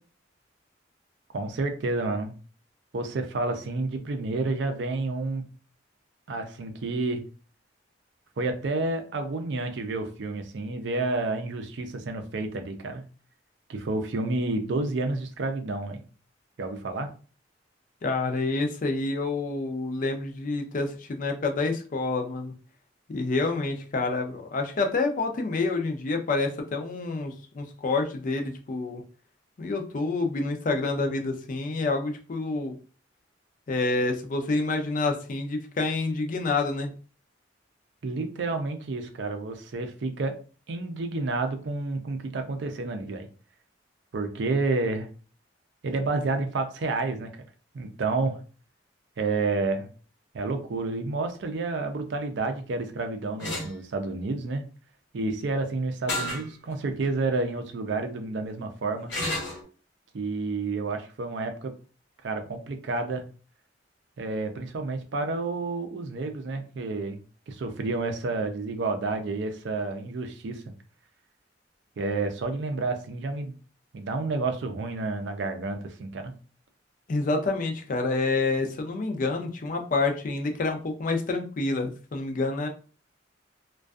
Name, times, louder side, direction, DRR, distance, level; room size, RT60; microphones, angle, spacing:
voice 1, 1.3-2.3 2.9-5.4 6.3-7.2 8.4-13.0 13.7-16.0 16.6-17.1 38.0-40.3 40.7-43.3 44.1-45.1 45.8-47.3 47.7-48.4 49.2-49.9 50.3-54.6 55.1-59.1 60.1-61.7 62.2-63.2 64.2-67.2 67.5-70.6 72.0-73.5 73.9-76.3, right 3 dB, 65° right, 6 dB, 0.4 m, -30 dB
voice 2, 18.0-22.5 23.1-29.0 29.6-32.7 33.7-36.9 77.1-82.7, left 3 dB, 45° left, 5 dB, 0.4 m, -28 dB
sound 1, 53.4-53.7 56.1-56.5 57.0-57.1 59.1-59.6, left 1 dB, 65° left, 1.0 m, -30 dB
2.5 x 2.2 x 2.3 m, 0.37 s
head